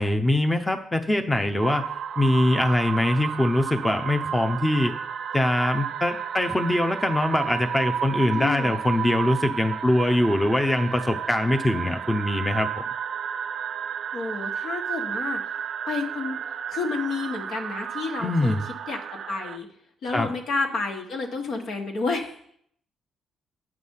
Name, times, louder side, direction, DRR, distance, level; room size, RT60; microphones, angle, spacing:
voice 1, 0.0-1.8 2.2-4.9 5.3-12.8 18.2-18.6 20.1-20.3, left 1 dB, 10° left, 5 dB, 0.8 m, -23 dB
sound 1, 1.6-19.6, right 8 dB, 60° right, 0.5 m, -32 dB
voice 2, 8.3-8.8 14.1-15.4 15.9-16.4 16.7-18.6 18.9-19.7 20.0-22.3, left 4 dB, 70° left, 2 dB, 1.9 m, -30 dB
9.9 x 6.1 x 5.7 m, 0.68 s
cardioid pair, 90°, 0 cm